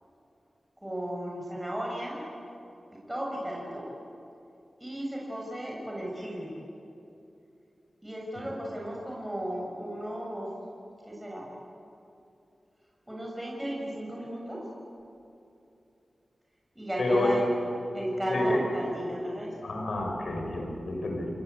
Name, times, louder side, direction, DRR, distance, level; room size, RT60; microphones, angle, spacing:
voice 1, 0.8-2.2 3.1-3.9 4.8-6.5 8.0-10.5 11.1-11.5 13.1-14.6 16.8-17.6 17.9-19.6, equal, 10° right, -3 dB, 6.9 m, -34 dB
voice 2, 17.0-17.3 18.3-18.4 19.6-21.3, left 2 dB, 80° left, 1 dB, 6.4 m, -29 dB
29.5 x 21.5 x 8.3 m, 2.6 s
wide cardioid pair, 75°, 0 cm